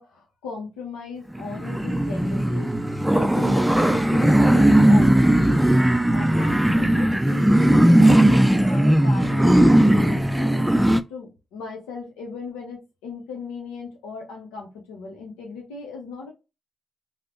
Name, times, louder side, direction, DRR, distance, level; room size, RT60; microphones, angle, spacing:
voice 1, 0.0-5.6 6.1-10.7 11.1-16.3, left 4 dB, 90° left, 0 dB, 0.6 m, -37 dB
sound 1, 1.3-11.0, right 1 dB, 5° right, 0.3 m, -18 dB
3.2 x 2.0 x 2.3 m, 0.27 s
hypercardioid pair, 45°, 0 cm